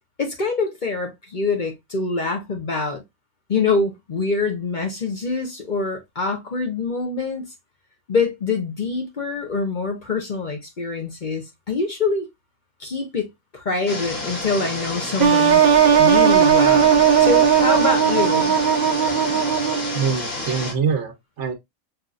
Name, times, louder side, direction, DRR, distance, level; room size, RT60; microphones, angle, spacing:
voice 1, 0.2-3.0 3.5-7.4 8.1-12.3 12.8-15.6 16.0-18.5, left 4 dB, 45° left, 0.8 m, -25 dB
sound 1, 13.9-20.7, left 2 dB, 90° left, 2.1 m, -30 dB
sound 2, 15.2-20.1, right 8 dB, 45° right, 0.6 m, -16 dB
voice 2, 19.9-21.5, right 6 dB, 65° right, 1.1 m, -24 dB
5.8 x 2.7 x 2.4 m
omnidirectional pair, 1.3 m